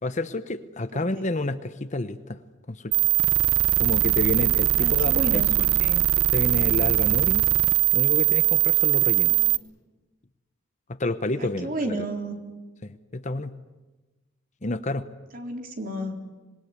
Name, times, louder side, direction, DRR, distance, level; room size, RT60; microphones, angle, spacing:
voice 1, 0.0-2.4 2.7-2.9 3.8-5.4 5.8-7.5 7.9-9.4 10.9-12.0 12.8-13.5 14.6-15.1, left 2 dB, 35° left, 12 dB, 0.9 m, -29 dB
voice 2, 0.9-1.3 4.8-5.5 9.3-9.5 11.4-12.4 15.3-16.1, right 1 dB, 45° right, 3 dB, 3.7 m, -32 dB
sound 1, 2.9-9.6, right 16 dB, 90° right, 0.8 m, -21 dB
26.0 x 21.5 x 9.6 m, 1.2 s
head